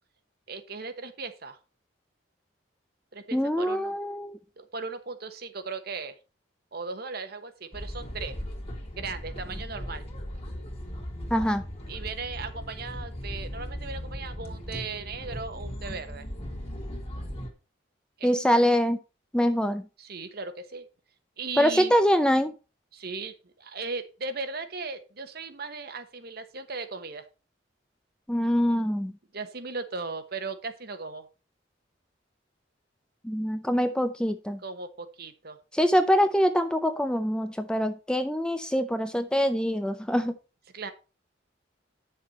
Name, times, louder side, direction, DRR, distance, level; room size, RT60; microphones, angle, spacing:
voice 1, 0.5-1.6 3.1-4.0 4.6-6.2 6.7-8.4 8.9-10.0 11.9-16.3 18.2-18.6 20.0-20.8 21.4-22.0 22.9-27.3 29.3-31.3 34.6-35.6 40.7-40.9, right 4 dB, 50° right, 9 dB, 1.2 m, -37 dB
voice 2, 3.3-4.4 11.3-11.6 18.2-19.0 19.3-19.8 21.6-22.5 28.3-29.1 33.2-34.6 35.7-40.3, equal, 5° left, 9 dB, 0.5 m, -24 dB
sound 1, 7.7-17.5, equal, 30° left, 2.2 m, -38 dB
9.7 x 6.7 x 4.2 m, 0.31 s
head